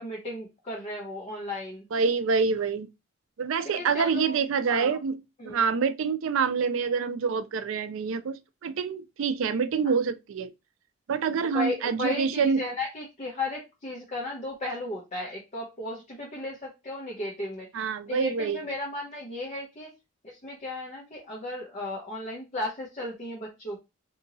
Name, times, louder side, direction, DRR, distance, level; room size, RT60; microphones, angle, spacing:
voice 1, 0.0-1.8 3.7-4.4 4.7-5.0 5.4-5.6 11.4-19.9 20.2-23.8, left 2 dB, 35° left, 0.9 m, -35 dB
voice 2, 1.9-2.9 3.4-5.2 5.5-10.5 11.1-12.6 17.7-18.7, right 5 dB, 70° right, 0.4 m, -26 dB
2.8 x 2.7 x 3.9 m
head